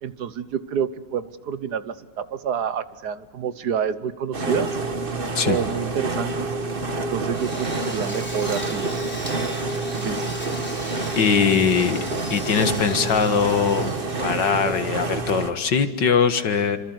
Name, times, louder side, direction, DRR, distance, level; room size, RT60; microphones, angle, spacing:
voice 1, 0.0-4.7 5.4-6.5 6.9-8.8 9.9-10.3, right 7 dB, 65° right, 13 dB, 1.6 m, -28 dB
sound 1, 4.3-15.5, right 3 dB, 30° right, 1.7 m, -28 dB
Drill, 7.3-15.2, equal, 5° left, 4.3 m, -38 dB
voice 2, 11.2-12.0 12.3-16.8, left 6 dB, 80° left, 9 dB, 2.3 m, -21 dB
28.0 x 25.5 x 8.0 m, 1.2 s
omnidirectional pair, 1.9 m